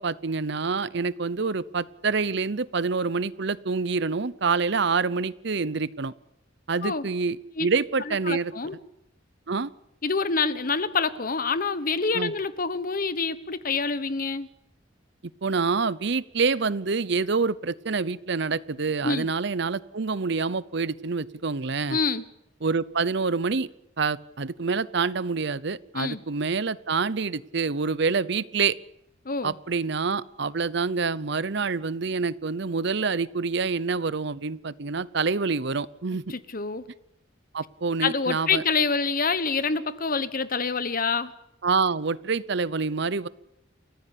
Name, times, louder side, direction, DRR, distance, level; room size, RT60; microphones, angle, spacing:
voice 1, 0.0-6.1 6.7-8.5 9.5-9.7 12.1-12.3 15.4-22.0 22.6-23.7 24.0-28.8 29.4-36.3 37.5-38.6 41.6-43.3, right 4 dB, 65° right, 0.8 m, -27 dB
voice 2, 8.1-8.8 10.0-14.5 19.0-19.3 21.9-22.2 25.9-26.2 29.2-29.5 36.3-36.9 38.0-41.3, left 4 dB, 50° left, 1.2 m, -26 dB
29.0 x 14.5 x 8.6 m
head